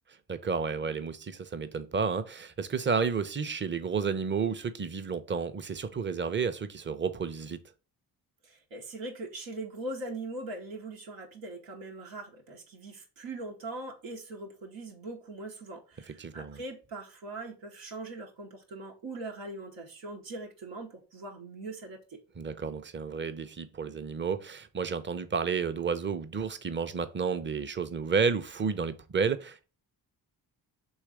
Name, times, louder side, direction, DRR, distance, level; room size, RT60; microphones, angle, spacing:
voice 1, 0.3-7.6 16.2-16.6 22.4-29.6, right 5 dB, 25° right, 0.6 m, -31 dB
voice 2, 8.4-22.2, right 2 dB, 90° right, 1.0 m, -41 dB
3.2 x 3.0 x 4.7 m
supercardioid pair, 55°, 45 cm